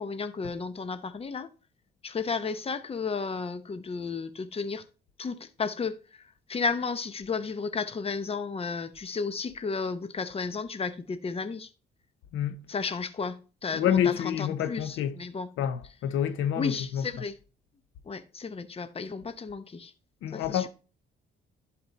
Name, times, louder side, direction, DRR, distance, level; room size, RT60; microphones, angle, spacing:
voice 1, 0.0-1.5 2.0-4.8 5.2-11.7 12.7-15.5 16.6-17.3 18.0-19.9 20.3-20.7, left 4 dB, 30° left, 0.8 m, -33 dB
voice 2, 13.7-15.1 15.6-17.1 20.2-20.7, left 9 dB, 85° left, 0.8 m, -28 dB
11.0 x 4.3 x 4.1 m
cardioid pair, 90°, 20 cm